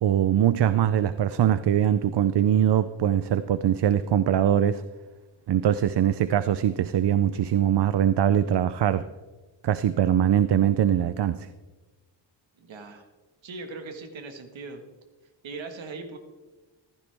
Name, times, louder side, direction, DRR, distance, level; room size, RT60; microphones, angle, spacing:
voice 1, 0.0-4.8 5.5-9.1 9.6-11.5, right 10 dB, 65° right, 0.6 m, -22 dB
voice 2, 12.6-13.1 13.4-14.8 15.4-16.2, right 3 dB, 85° right, 1.7 m, -39 dB
15.0 x 14.5 x 3.5 m
wide cardioid pair, 115°, 45 cm